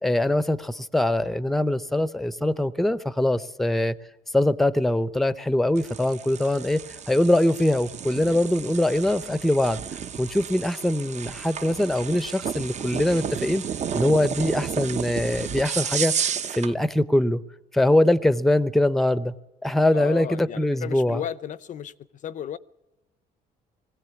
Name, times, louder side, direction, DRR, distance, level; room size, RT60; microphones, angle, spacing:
voice 1, 0.0-3.9 4.3-9.8 10.2-13.6 13.9-16.1 16.5-17.4 17.7-19.3 19.6-21.2, left 1 dB, ahead, 0.6 m, -22 dB
sound 1, 5.7-16.7, right 7 dB, 45° right, 0.8 m, -32 dB
voice 2, 19.9-21.9 22.2-22.6, left 9 dB, 50° left, 0.6 m, -34 dB
21.0 x 16.0 x 8.3 m
cardioid pair, 110°, 17 cm